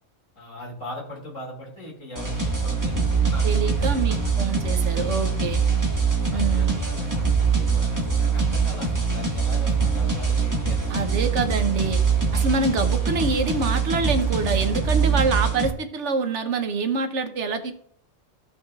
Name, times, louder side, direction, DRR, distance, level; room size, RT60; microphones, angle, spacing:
voice 1, 0.4-4.2 5.4-5.6 6.3-10.9, left 1 dB, 75° left, -2 dB, 2.8 m, -39 dB
sound 1, 2.2-15.7, right 5 dB, 15° right, 1.2 m, -23 dB
voice 2, 3.4-5.6 6.3-6.8 10.9-12.0 12.3-17.7, right 4 dB, 65° right, 8 dB, 1.1 m, -26 dB
15.5 x 5.8 x 2.4 m, 0.62 s
omnidirectional pair, 1.3 m